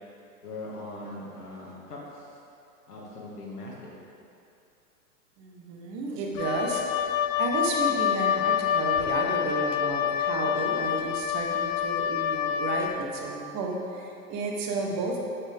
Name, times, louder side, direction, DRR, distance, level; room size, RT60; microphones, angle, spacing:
voice 1, 0.4-2.3 2.9-3.9, left 2 dB, 80° left, -4 dB, 2.1 m, -40 dB
voice 2, 5.4-7.0 7.4-15.2, right 3 dB, 35° right, 0 dB, 1.4 m, -32 dB
Wind instrument woodwind instrument, 6.3-13.0, left 9 dB, 55° left, 0.5 m, -27 dB
8.6 x 7.5 x 3.6 m, 2.6 s
hypercardioid pair, 105°, 46 cm